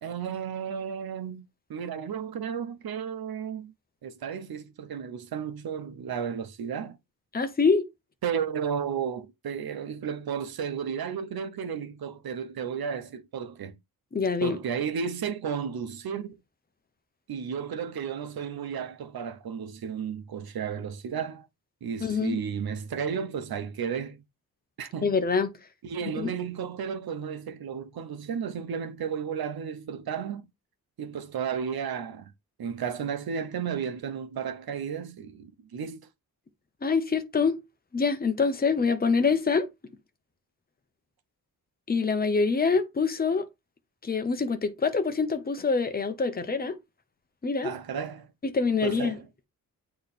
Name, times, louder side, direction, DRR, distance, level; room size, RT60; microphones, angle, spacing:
voice 1, 0.0-1.4 1.7-3.7 4.0-7.0 8.2-13.8 14.4-16.4 17.3-21.5 21.8-24.2 24.8-25.1 25.8-30.5 31.0-32.3 32.6-36.0 47.6-48.3 48.8-49.2, right 7 dB, 85° right, 1.0 m, -33 dB
voice 2, 7.3-7.9 14.1-14.6 22.0-22.4 25.0-25.5 26.2-26.3 36.8-37.6 37.9-39.7 41.9-43.5 44.0-46.7 47.4-47.7 48.4-49.2, left 5 dB, 25° left, 0.9 m, -25 dB
8.6 x 3.3 x 4.2 m
wide cardioid pair, 155°, 36 cm